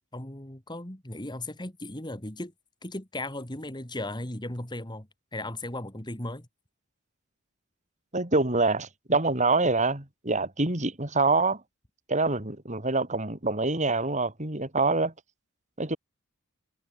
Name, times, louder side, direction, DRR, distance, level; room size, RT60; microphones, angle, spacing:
voice 1, 0.1-2.5 2.8-6.5, left 1 dB, 20° left, 2.4 m, -36 dB
voice 2, 8.1-11.6 12.1-15.1 15.8-16.0, right 3 dB, 30° right, 3.6 m, -25 dB
head